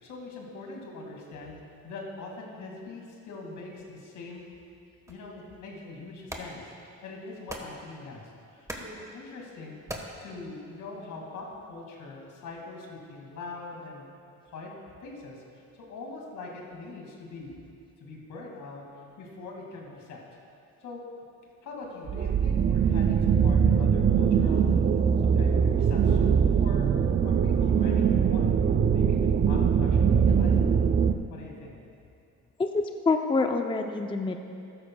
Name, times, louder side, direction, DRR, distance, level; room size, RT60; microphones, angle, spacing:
voice 1, 0.0-4.4 5.1-6.7 7.0-9.8 10.2-14.1 14.4-14.7 15.0-17.6 18.0-20.2 20.8-21.0 21.6-24.7 25.2-26.9 27.2-28.5 28.9-30.8 31.3-31.8, left 3 dB, 80° left, -1 dB, 2.2 m, -42 dB
sound 1, 5.1-11.1, right 1 dB, 10° right, 1.2 m, -44 dB
sound 2, 22.1-31.1, right 7 dB, 35° right, 0.5 m, -22 dB
voice 2, 32.6-34.4, left 3 dB, 15° left, 5 dB, 0.5 m, -26 dB
13.5 x 12.5 x 2.3 m, 2.5 s
cardioid pair, 90°, 30 cm